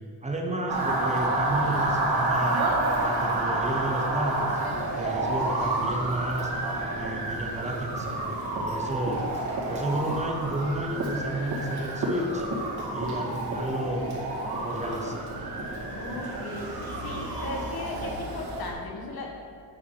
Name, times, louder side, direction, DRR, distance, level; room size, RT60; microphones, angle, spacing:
voice 1, 0.2-2.6 2.9-4.6 4.9-6.5 6.9-8.2 8.6-9.3 9.6-12.4 12.9-14.2 14.6-15.3, right 1 dB, 20° right, 1 dB, 0.9 m, -31 dB
Motor vehicle (road) / Siren, 0.7-18.7, right 2 dB, 85° right, 2.1 m, -29 dB
voice 2, 12.9-13.3 15.9-16.7 17.0-19.5, left 2 dB, 75° left, 0 dB, 1.5 m, -37 dB
8.7 x 4.8 x 6.4 m, 2.3 s
wide cardioid pair, 145°, 36 cm